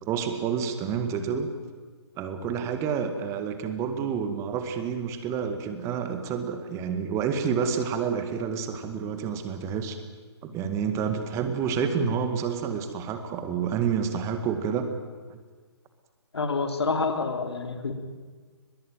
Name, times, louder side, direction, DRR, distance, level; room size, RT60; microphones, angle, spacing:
voice 1, 0.0-1.5 2.2-10.0 10.4-14.9 15.3-15.4, right 6 dB, 20° right, 8 dB, 2.0 m, -29 dB
voice 2, 16.3-17.9, left 4 dB, 70° left, 6 dB, 3.3 m, -27 dB
23.0 x 21.5 x 9.3 m, 1.5 s
figure-of-eight pair, 135°, 14 cm